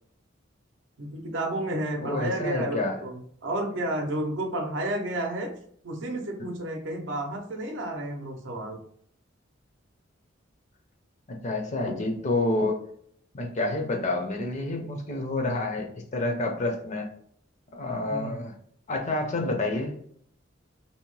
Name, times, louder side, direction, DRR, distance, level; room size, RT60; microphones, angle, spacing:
voice 1, 1.0-5.5 5.8-8.8 18.1-18.5, right 1 dB, 65° right, 3 dB, 0.6 m, -31 dB
voice 2, 2.0-3.0 11.4-12.8 13.3-17.1 17.7-18.5 18.9-20.0, left 2 dB, 35° left, 3 dB, 0.5 m, -28 dB
2.7 x 2.0 x 3.0 m, 0.63 s
head